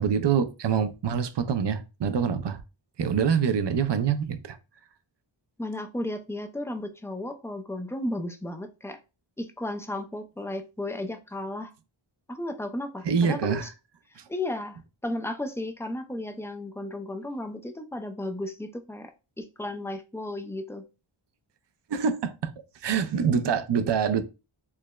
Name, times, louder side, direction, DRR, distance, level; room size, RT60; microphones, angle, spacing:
voice 1, 0.0-2.6 3.0-4.6 13.0-13.7 21.9-22.3 22.8-24.2, right 7 dB, 60° right, 0.5 m, -25 dB
voice 2, 5.6-9.0 9.4-11.7 12.3-13.7 14.3-19.1 19.4-20.8, left 1 dB, 5° left, 0.3 m, -34 dB
4.7 x 2.1 x 2.2 m
wide cardioid pair, 55°, 50 cm